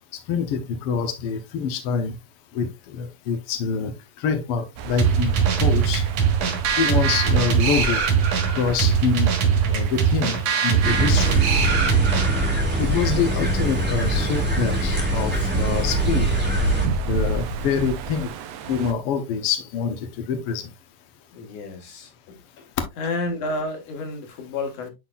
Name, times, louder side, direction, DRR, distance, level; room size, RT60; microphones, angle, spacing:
voice 1, 0.3-2.1 2.5-3.9 4.2-6.0 6.8-8.0 8.6-9.3 9.7-11.4 12.8-16.3 17.0-18.3 18.7-20.0 20.3-20.7, left 6 dB, 75° left, 1.3 m, -25 dB
sound 1, 4.8-18.9, right 4 dB, 85° right, 1.4 m, -31 dB
sound 2, 5.0-12.6, right 7 dB, 60° right, 2.4 m, -21 dB
sound 3, 10.8-16.9, right 1 dB, 5° right, 1.1 m, -23 dB
voice 2, 21.3-22.7 23.0-24.9, left 2 dB, 55° left, 2.4 m, -31 dB
9.8 x 4.0 x 2.4 m
omnidirectional pair, 3.8 m